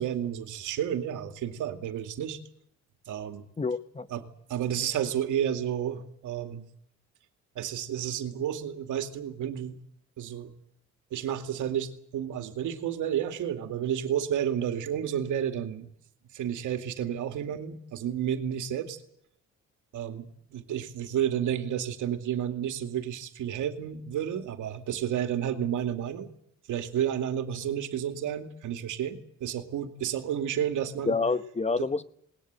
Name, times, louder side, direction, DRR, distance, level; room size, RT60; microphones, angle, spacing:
voice 1, 0.0-2.4 3.1-3.4 4.1-6.7 7.6-9.8 10.2-10.5 11.1-15.9 16.3-19.0 19.9-26.3 26.7-31.1 31.8-31.9, right 10 dB, 80° right, 7 dB, 2.4 m, -31 dB
voice 2, 3.6-4.1 31.1-32.0, left 4 dB, 20° left, 13 dB, 1.0 m, -28 dB
20.0 x 19.5 x 8.9 m, 0.70 s
cardioid pair, 90°, 30 cm